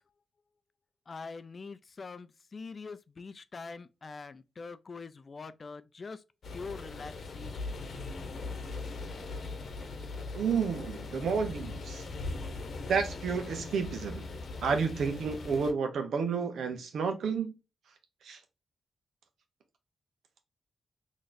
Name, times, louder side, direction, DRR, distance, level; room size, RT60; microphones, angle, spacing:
voice 1, 1.1-6.2 6.5-7.6, left 4 dB, 40° left, 0.4 m, -44 dB
sound 1, 6.4-15.7, left 3 dB, 55° left, 0.9 m, -40 dB
voice 2, 10.3-12.0 12.9-14.2 14.6-17.5 18.2-18.4, right 5 dB, 80° right, 1.0 m, -31 dB
4.0 x 3.0 x 2.5 m
wide cardioid pair, 120°, 0 cm